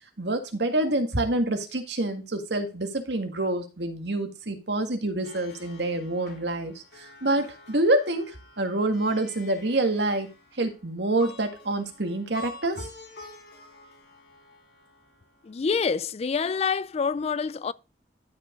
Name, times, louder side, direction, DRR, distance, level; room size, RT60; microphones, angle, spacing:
voice 1, 0.2-6.7 7.2-10.3 10.6-12.8, right 2 dB, 70° right, 1.9 m, -27 dB
Plucked string instrument, 5.2-15.6, left 3 dB, 65° left, 3.0 m, -48 dB
voice 2, 15.4-17.7, left 5 dB, 35° left, 0.4 m, -27 dB
12.5 x 5.3 x 3.7 m
head